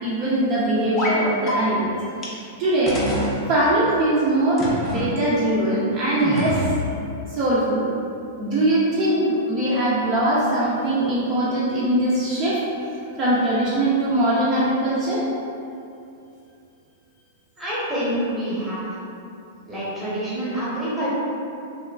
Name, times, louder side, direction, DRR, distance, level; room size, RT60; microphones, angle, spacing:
voice 1, 0.0-3.0 3.5-6.6 7.3-7.9 8.4-12.6 13.2-15.2, right 1 dB, 35° right, -8 dB, 0.4 m, -21 dB
sound 1, 1.0-1.2 1.5-1.6 2.2-2.3 2.9-3.3 4.6-5.1 6.2-6.9, left 1 dB, 20° left, 0.5 m, -26 dB
voice 2, 17.6-18.8 19.7-21.1, right 1 dB, 5° right, -11 dB, 0.8 m, -27 dB
2.9 x 2.3 x 2.3 m, 2.6 s
supercardioid pair, 150°, 0 cm